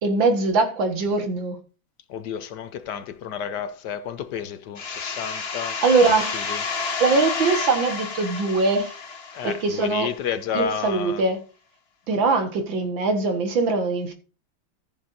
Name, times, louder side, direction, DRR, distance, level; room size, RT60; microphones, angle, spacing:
voice 1, 0.0-1.6 5.8-6.5 7.0-9.0 9.4-10.1 10.5-11.4 12.1-14.1, right 3 dB, 75° right, 2.3 m, -22 dB
voice 2, 2.1-6.6 9.3-11.2, left 7 dB, 65° left, 1.2 m, -31 dB
sound 1, 4.8-10.3, left 5 dB, 40° left, 1.1 m, -30 dB
14.5 x 7.1 x 2.6 m
omnidirectional pair, 2.1 m